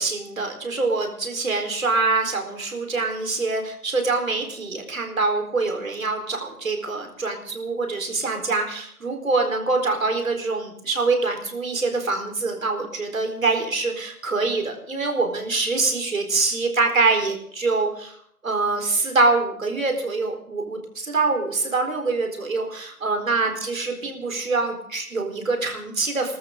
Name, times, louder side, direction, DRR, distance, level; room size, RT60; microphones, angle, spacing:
voice 1, 0.0-18.2 18.4-26.4, right 3 dB, 60° right, 4 dB, 4.5 m, -24 dB
27.0 x 13.0 x 3.9 m, 0.63 s
hypercardioid pair, 175°, 46 cm